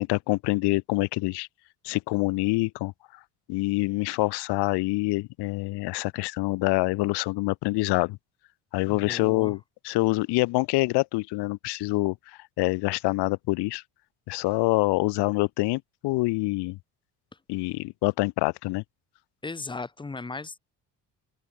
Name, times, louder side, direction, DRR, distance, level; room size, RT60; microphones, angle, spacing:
voice 1, 0.0-1.5 1.8-2.9 3.5-8.2 8.7-9.6 9.8-12.2 12.6-13.8 14.3-16.8 17.5-18.8, left 22 dB, 85° left, 0.7 m, -26 dB
voice 2, 8.8-9.6 19.4-20.6, left 3 dB, 10° left, 2.2 m, -37 dB
open air
cardioid pair, 180°, 39 cm